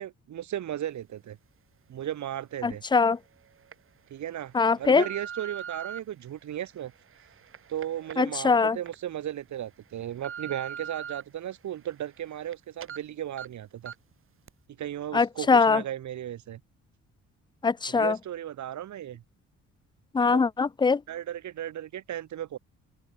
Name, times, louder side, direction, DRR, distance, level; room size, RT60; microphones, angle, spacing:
voice 1, 0.0-1.4 1.9-2.8 4.1-6.9 7.7-13.9 14.8-16.6 17.9-19.2 21.1-22.6, right 11 dB, 70° right, 3.8 m, -35 dB
voice 2, 2.6-3.2 4.5-5.0 8.2-8.8 15.1-15.8 17.6-18.2 20.1-21.0, left 4 dB, 15° left, 0.5 m, -22 dB
sound 1, 2.7-2.8 3.4-3.7 4.4-6.0 6.7-9.0 9.4-9.5 9.9-11.2 11.7-12.5 12.8-13.0 13.4-13.5 13.9-14.1 14.5-14.6, right 8 dB, 45° right, 1.4 m, -41 dB
open air
cardioid pair, 90°, 30 cm